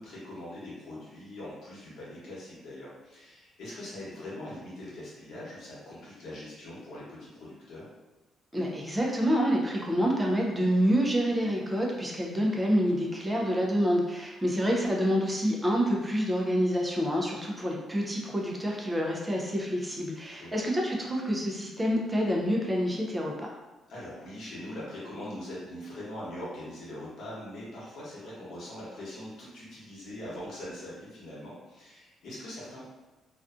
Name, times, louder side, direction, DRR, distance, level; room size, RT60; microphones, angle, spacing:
voice 1, 0.0-7.8 20.4-20.6 23.9-32.9, left 1 dB, 75° left, -7 dB, 1.0 m, -42 dB
voice 2, 8.5-23.5, equal, 15° right, -2 dB, 0.5 m, -27 dB
2.4 x 2.2 x 2.5 m, 1.1 s
cardioid pair, 90°, 0 cm